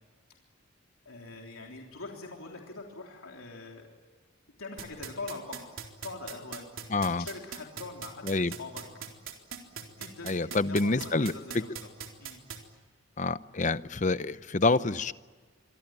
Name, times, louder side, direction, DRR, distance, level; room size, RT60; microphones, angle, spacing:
voice 1, 1.1-3.9 4.6-5.7 6.0-6.6 7.2-8.8 10.0-11.9 12.2-12.4, left 3 dB, 85° left, 0 dB, 3.5 m, -43 dB
sound 1, 4.8-12.6, right 8 dB, 70° right, 3.9 m, -39 dB
voice 2, 6.9-7.2 8.2-8.5 10.2-11.6 13.2-15.1, left 3 dB, 35° left, 14 dB, 0.7 m, -27 dB
26.5 x 23.5 x 9.1 m, 1.4 s
head